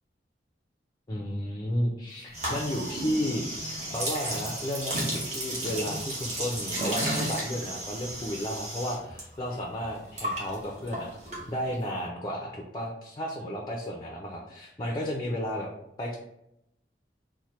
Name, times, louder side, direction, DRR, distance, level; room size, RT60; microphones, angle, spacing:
voice 1, 1.1-3.5 3.9-11.1 11.5-15.7 16.0-16.2, equal, 25° left, 0 dB, 0.4 m, -33 dB
sound 1, 2.3-9.2 9.5-11.9, right 1 dB, 40° right, 1.1 m, -33 dB
4.2 x 2.1 x 3.0 m, 0.80 s
head